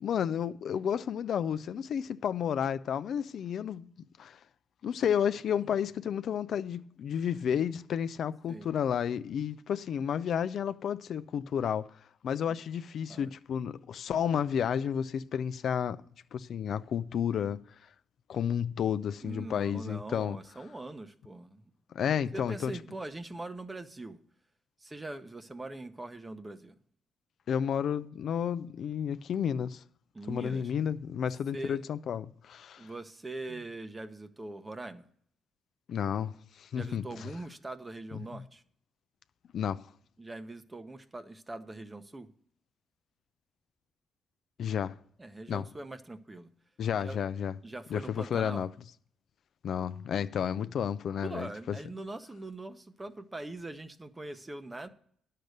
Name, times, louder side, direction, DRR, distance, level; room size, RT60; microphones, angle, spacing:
voice 1, 0.0-3.9 4.2-4.4 4.8-11.9 12.2-16.0 16.3-17.6 18.3-20.4 21.9-22.7 27.5-29.8 30.3-32.9 35.9-37.3 39.5-39.8 44.6-45.0 45.5-45.7 46.8-47.5 47.9-48.7 49.6-51.8, left 8 dB, 65° left, 0.4 m, -31 dB
voice 2, 19.2-21.6 22.3-24.2 24.8-26.7 30.1-30.7 31.5-31.8 32.8-35.0 36.7-38.6 40.2-42.3 45.2-46.5 47.0-47.2 47.6-48.7 51.2-54.9, right 2 dB, 20° right, 0.9 m, -42 dB
10.5 x 6.6 x 6.5 m
cardioid pair, 90°, 0 cm